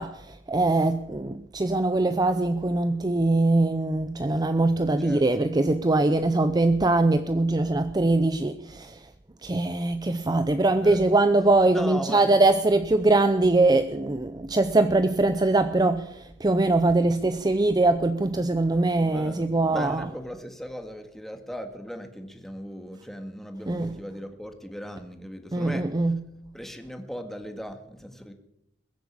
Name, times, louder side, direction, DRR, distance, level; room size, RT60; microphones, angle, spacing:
voice 1, 0.0-9.1 9.4-20.0 23.7-24.0 25.5-26.2, right 2 dB, 20° right, 0.6 m, -22 dB
voice 2, 11.7-12.3 19.0-25.8 26.5-28.3, equal, ahead, 1.9 m, -38 dB
21.5 x 7.9 x 8.7 m
head